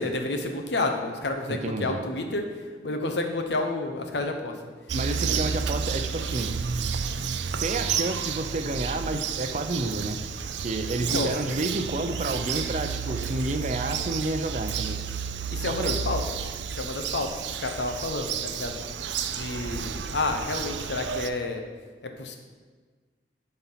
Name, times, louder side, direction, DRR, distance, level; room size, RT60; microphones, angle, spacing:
voice 1, 0.0-4.6 11.0-11.3 15.5-16.2 16.7-18.8 19.3-21.6 22.0-22.4, left 2 dB, 80° left, 4 dB, 1.0 m, -30 dB
voice 2, 1.5-2.0 4.9-7.0 7.6-10.2 10.6-15.0 15.7-16.1, right 2 dB, 40° right, 7 dB, 0.6 m, -30 dB
Bird vocalization bird call bird song, 4.9-21.3, right 6 dB, 90° right, 0.5 m, -31 dB
sound 1, 10.0-15.1, equal, 5° left, 0.8 m, -46 dB
11.0 x 4.4 x 5.7 m, 1.5 s
head